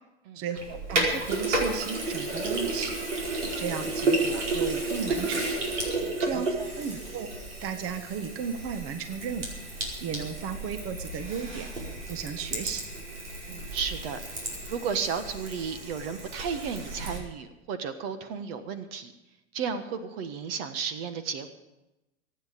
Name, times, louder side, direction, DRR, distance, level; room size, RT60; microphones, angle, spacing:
voice 1, 0.3-3.0 3.3-5.4 6.2-6.5 6.7-7.3 7.6-9.5 10.0-11.7 12.1-12.8, right 7 dB, 40° right, 9 dB, 1.5 m, -35 dB
Sink (filling or washing), 0.6-17.2, right 2 dB, 75° right, 4.8 m, -32 dB
voice 2, 13.5-19.1 19.5-21.5, right 6 dB, 55° right, 10 dB, 1.6 m, -34 dB
24.0 x 9.3 x 5.3 m, 0.98 s
hypercardioid pair, 95°, 35 cm